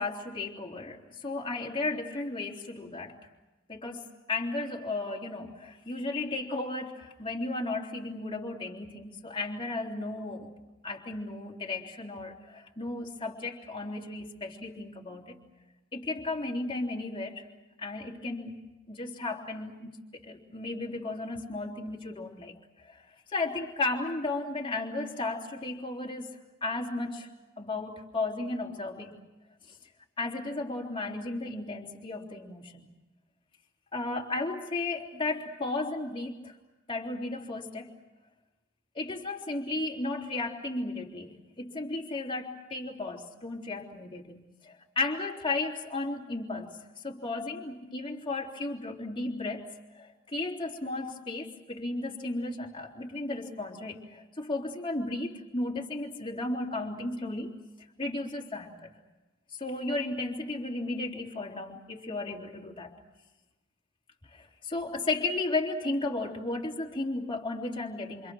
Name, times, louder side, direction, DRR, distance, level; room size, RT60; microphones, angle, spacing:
voice 1, 0.0-3.1 3.7-10.5 10.8-15.4 15.9-17.4 17.8-18.6 18.9-20.0 20.2-22.5 22.8-23.0 23.3-26.3 26.6-27.3 27.6-29.2 30.2-32.9 33.9-36.5 36.9-37.9 38.9-46.8 47.0-49.6 49.9-57.5 58.0-58.9 59.6-62.9 64.3-68.3, left 2 dB, 25° left, -1 dB, 3.4 m, -34 dB
28.0 x 27.5 x 6.3 m, 1.1 s
head